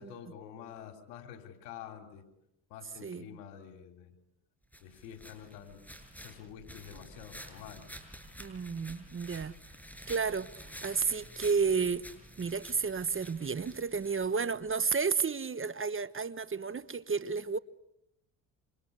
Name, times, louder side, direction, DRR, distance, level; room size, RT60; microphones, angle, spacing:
voice 1, 0.0-2.3 2.7-4.1 4.8-5.8 6.2-7.9, left 9 dB, 85° left, 3.8 m, -48 dB
sound 1, 4.7-14.7, equal, 5° left, 7.2 m, -50 dB
voice 2, 8.4-9.6 10.1-10.5 10.8-12.1 12.4-17.6, right 5 dB, 25° right, 1.2 m, -32 dB
27.0 x 26.5 x 8.3 m
supercardioid pair, 70°, 47 cm